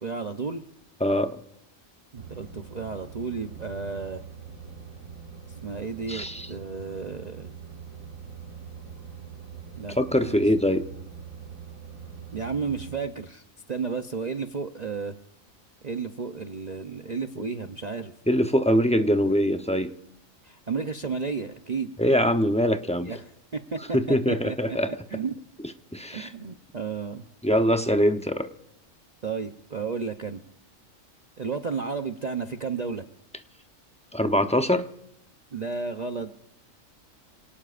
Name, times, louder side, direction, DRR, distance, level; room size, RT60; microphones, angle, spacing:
voice 1, 0.0-0.6 2.1-4.2 5.6-7.5 9.8-9.9 10.2-10.4 12.3-13.4 13.7-15.2 15.8-18.1 20.4-21.9 23.0-24.8 25.1-25.4 26.1-27.2 29.2-30.4 31.4-33.1 35.5-36.4, right 5 dB, 40° right, 6 dB, 0.7 m, -32 dB
voice 2, 1.0-1.4 6.1-6.5 9.9-10.9 18.3-19.9 22.0-23.1 23.9-24.9 25.9-26.3 27.4-28.5 34.1-34.9, equal, 10° left, 7 dB, 0.5 m, -23 dB
sound 1, 2.1-13.0, right 6 dB, 90° right, 2.5 m, -43 dB
27.5 x 18.5 x 2.5 m, 0.81 s
omnidirectional pair, 1.4 m